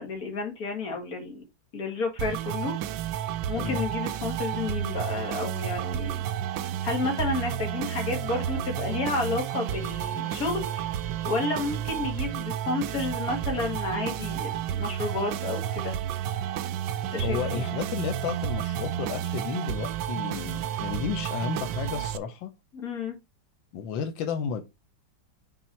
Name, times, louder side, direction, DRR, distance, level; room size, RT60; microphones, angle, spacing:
voice 1, 0.0-1.4 1.7-2.7 3.5-6.2 6.8-10.9 11.2-15.9 17.1-17.6 22.7-23.2, left 3 dB, 50° left, 2.3 m, -31 dB
sound 1, 2.2-22.2, right 11 dB, 75° right, 1.2 m, -31 dB
voice 2, 17.2-22.5 23.7-24.6, left 7 dB, 85° left, 1.5 m, -32 dB
6.1 x 4.0 x 4.4 m
omnidirectional pair, 2.0 m